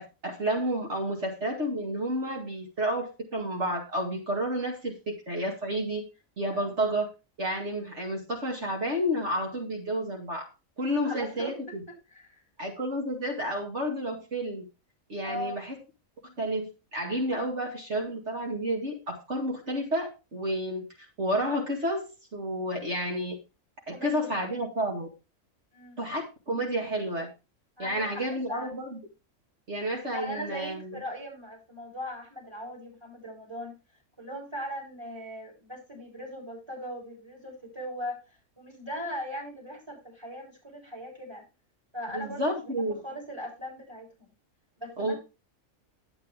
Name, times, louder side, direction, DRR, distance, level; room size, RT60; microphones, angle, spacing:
voice 1, 0.0-6.1 6.4-7.1 7.4-10.5 10.8-11.8 12.6-14.7 15.1-15.8 16.4-23.4 23.9-25.1 26.0-27.3 27.8-29.0 29.7-31.0 42.1-43.0 45.0-45.1, equal, 55° right, 0 dB, 2.5 m, -30 dB
voice 2, 11.0-11.7 12.1-12.4 15.2-15.6 23.9-24.4 25.7-26.0 27.8-28.7 30.1-33.8 34.2-38.2 38.6-41.4 41.9-44.3 44.8-45.2, equal, 20° right, -1 dB, 7.3 m, -39 dB
11.0 x 9.3 x 3.6 m, 0.28 s
omnidirectional pair, 1.4 m